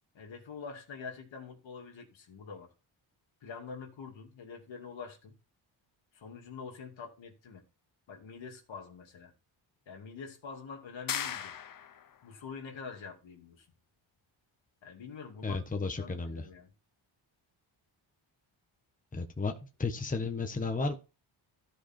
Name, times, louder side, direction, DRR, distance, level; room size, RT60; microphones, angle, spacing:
voice 1, 0.1-2.7 3.4-5.4 6.1-7.6 8.1-9.3 9.9-11.5 12.2-13.7 14.8-16.7, left 5 dB, 65° left, 2.6 m, -45 dB
sound 1, 11.1-12.2, left 8 dB, 45° left, 0.8 m, -37 dB
voice 2, 15.4-16.5 19.1-20.9, left 3 dB, 15° left, 1.2 m, -33 dB
13.5 x 5.1 x 4.4 m
cardioid pair, 105°, 49 cm